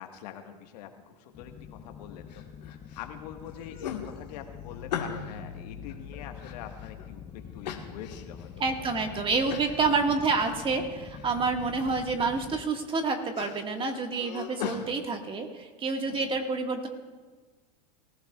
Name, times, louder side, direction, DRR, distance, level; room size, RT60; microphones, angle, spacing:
voice 1, 0.0-2.4 2.9-9.2 16.0-16.3, left 9 dB, 70° left, 5 dB, 1.5 m, -44 dB
sound 1, 1.3-12.6, left 8 dB, 30° left, 0.9 m, -45 dB
sound 2, 2.3-3.0 3.4-5.4 5.9-7.1 7.6-8.5 8.9-9.0 9.5-9.8 10.2-10.9 11.1-11.7 12.1-12.6 12.9-14.8, left 8 dB, 85° left, 1.6 m, -39 dB
voice 2, 8.6-16.9, right 4 dB, 25° right, 4 dB, 1.7 m, -28 dB
24.0 x 15.5 x 2.4 m, 1.4 s
hypercardioid pair, 105°, 21 cm